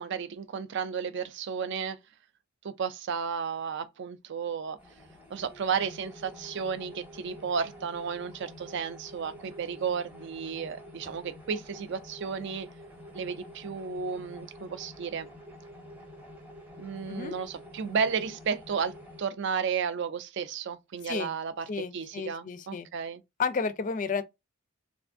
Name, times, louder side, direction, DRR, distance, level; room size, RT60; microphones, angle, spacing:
voice 1, 0.0-2.0 2.6-4.8 5.3-12.7 13.1-15.3 16.8-23.2, right 6 dB, 55° right, 0.4 m, -33 dB
sound 1, 4.8-19.2, left 1 dB, 5° right, 0.8 m, -48 dB
voice 2, 21.7-22.9 23.4-24.2, left 5 dB, 35° left, 0.4 m, -31 dB
3.3 x 2.5 x 2.5 m
head